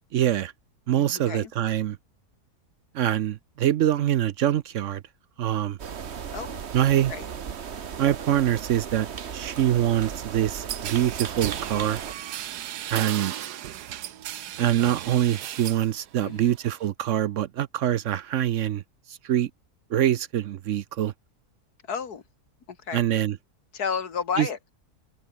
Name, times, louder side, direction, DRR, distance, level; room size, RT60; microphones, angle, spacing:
voice 1, 0.1-0.5 0.9-2.0 2.9-5.0 5.4-5.8 6.7-7.1 8.0-9.1 9.3-12.0 12.9-13.3 14.6-18.8 19.1-19.5 19.9-21.1 22.9-23.4 24.4-24.5, right 11 dB, 65° right, 0.8 m, -24 dB
voice 2, 0.9-1.5 6.3-6.6 7.1-7.2 16.2-16.5 21.9-22.2 22.7-23.0 23.7-24.6, left 6 dB, 75° left, 2.3 m, -32 dB
sound 1, 5.8-12.1, right 7 dB, 45° right, 1.3 m, -36 dB
sound 2, 10.7-15.9 16.2-16.9, right 11 dB, 85° right, 1.4 m, -35 dB
omnidirectional pair, 1.7 m